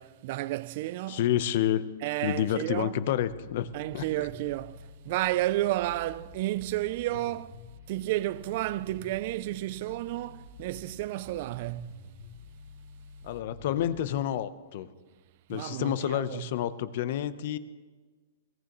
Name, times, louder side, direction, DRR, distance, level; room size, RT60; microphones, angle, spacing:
voice 1, 0.0-1.2 2.0-2.9 3.7-12.1 15.5-16.5, right 16 dB, 50° right, 0.3 m, -32 dB
voice 2, 1.1-1.9 2.2-3.7 3.9-4.0 13.2-14.9 15.5-17.6, left 11 dB, 55° left, 0.8 m, -29 dB
sound 1, 3.2-14.1, left 4 dB, 75° left, 5.7 m, -49 dB
21.5 x 17.0 x 3.1 m
hypercardioid pair, 135°, 0 cm